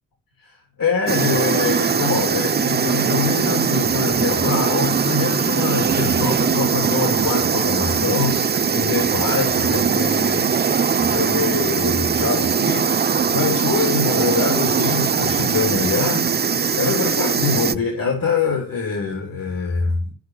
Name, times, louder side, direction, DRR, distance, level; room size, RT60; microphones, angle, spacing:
voice 1, 0.4-10.5 11.0-20.1, left 5 dB, 85° left, 3.4 m, -24 dB
sound 1, 1.1-17.8, right 6 dB, 30° right, 0.5 m, -20 dB
13.5 x 6.1 x 9.7 m
wide cardioid pair, 110°, 33 cm